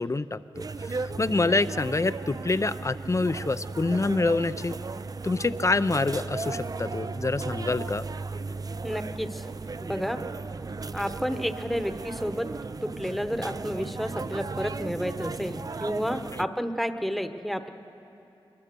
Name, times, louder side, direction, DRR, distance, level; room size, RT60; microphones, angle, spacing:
voice 1, 0.0-4.8 5.2-8.1, left 3 dB, 35° left, 14 dB, 0.5 m, -26 dB
sound 1, 0.5-16.4, right 4 dB, 40° right, 0.4 m, -36 dB
voice 2, 8.8-9.4 9.8-10.2 10.9-12.5 12.8-17.7, equal, ahead, 8 dB, 1.0 m, -31 dB
23.0 x 21.0 x 6.8 m, 3.0 s
wide cardioid pair, 60°, 9 cm